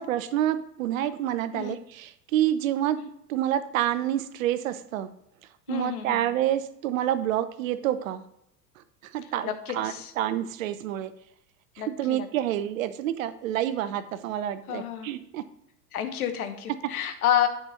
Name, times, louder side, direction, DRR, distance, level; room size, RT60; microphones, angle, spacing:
voice 1, 0.0-3.0 3.3-5.1 5.7-8.2 8.8-11.1 11.9-15.4, right 12 dB, 55° right, 13 dB, 0.7 m, -28 dB
voice 2, 5.7-6.2 9.4-10.1 11.8-12.3 14.7-15.1 15.9-17.5, left 10 dB, 60° left, 8 dB, 1.2 m, -29 dB
9.1 x 5.1 x 4.2 m, 0.78 s
figure-of-eight pair, 85°, 49 cm